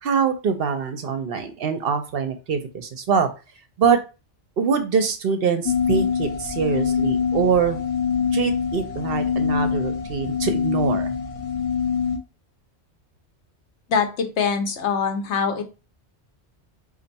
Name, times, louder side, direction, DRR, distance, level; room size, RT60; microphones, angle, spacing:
voice 1, 0.0-3.3 3.8-4.0 4.6-7.8 8.3-11.2, right 6 dB, 60° right, 8 dB, 0.8 m, -23 dB
sound 1, 5.7-12.2, left 6 dB, 35° left, 0.6 m, -24 dB
voice 2, 13.9-15.6, left 6 dB, 80° left, 6 dB, 1.1 m, -23 dB
4.4 x 2.6 x 3.9 m, 0.31 s
omnidirectional pair, 1.2 m